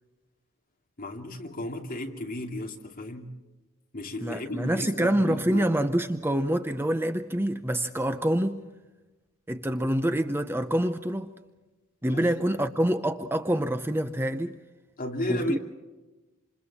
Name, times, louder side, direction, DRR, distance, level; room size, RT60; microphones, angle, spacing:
voice 1, 1.0-3.3 3.9-5.7 12.0-12.3 15.0-15.6, left 1 dB, 40° left, 2.7 m, -34 dB
voice 2, 4.2-8.6 9.5-11.4 12.0-14.6 15.3-15.6, right 1 dB, 10° right, 0.7 m, -26 dB
27.5 x 27.5 x 4.2 m
head